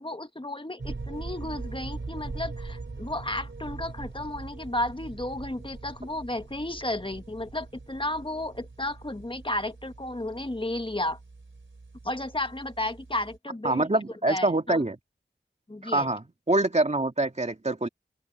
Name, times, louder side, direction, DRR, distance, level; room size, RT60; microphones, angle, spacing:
voice 1, 0.0-11.2 12.0-13.9 14.3-14.8 15.7-16.1, left 1 dB, 25° left, 1.5 m, -33 dB
sound 1, 0.8-13.4, right 3 dB, 65° right, 3.4 m, -42 dB
voice 2, 13.6-15.0 15.8-17.9, right 2 dB, 30° right, 2.2 m, -25 dB
open air
wide cardioid pair, 55°, 21 cm